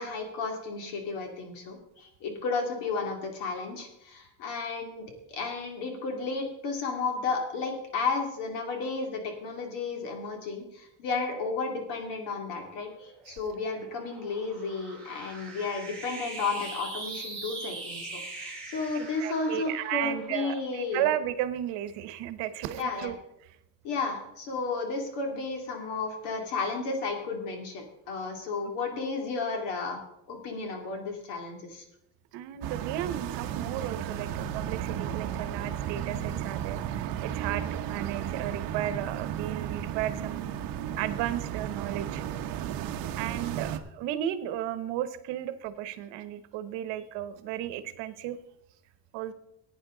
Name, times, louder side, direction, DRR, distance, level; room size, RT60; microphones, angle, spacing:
voice 1, 0.0-21.1 22.8-23.1 23.8-30.0 30.3-31.8 37.5-37.7, left 4 dB, 70° left, 3 dB, 2.7 m, -33 dB
sound 1, 13.0-21.6, right 3 dB, 5° left, 2.7 m, -42 dB
voice 2, 18.9-23.2 28.9-29.0 32.3-40.6 41.0-42.2 43.2-48.4 49.1-49.3, right 12 dB, 75° right, 12 dB, 1.0 m, -34 dB
sound 2, 32.6-43.8, right 10 dB, 55° right, 0.9 m, -34 dB
15.5 x 9.2 x 3.8 m, 0.83 s
cardioid pair, 170°, 43 cm